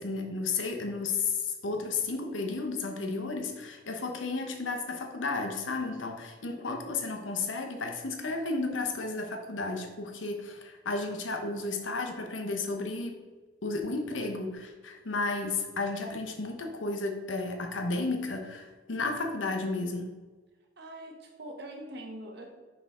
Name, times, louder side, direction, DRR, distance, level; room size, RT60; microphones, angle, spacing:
voice 1, 0.0-13.2 13.6-20.1, left 3 dB, 75° left, 4 dB, 0.9 m, -33 dB
voice 2, 20.8-22.6, right 1 dB, 60° right, 2 dB, 1.1 m, -43 dB
6.0 x 4.7 x 4.2 m, 1.3 s
head